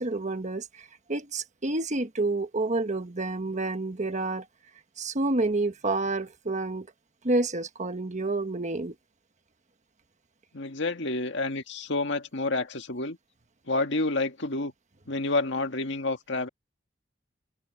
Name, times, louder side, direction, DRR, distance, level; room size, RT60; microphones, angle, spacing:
voice 1, 0.0-4.4 5.0-6.9 7.2-8.9, right 2 dB, 40° right, 1.4 m, -29 dB
voice 2, 10.5-13.2 13.7-14.7 15.1-16.5, left 2 dB, 65° left, 1.9 m, -29 dB
open air
head